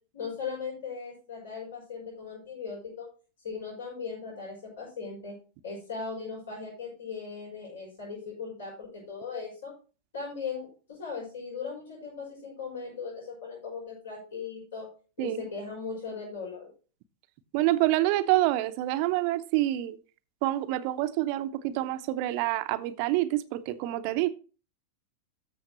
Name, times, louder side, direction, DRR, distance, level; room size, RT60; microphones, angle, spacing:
voice 1, 0.1-3.1 3.4-5.3 5.6-9.7 10.1-14.9 15.2-16.7, left 5 dB, 65° left, 5.8 m, -38 dB
voice 2, 17.5-20.0 20.4-24.3, right 16 dB, 45° right, 0.7 m, -27 dB
13.5 x 7.3 x 3.0 m
figure-of-eight pair, 90°, 0 cm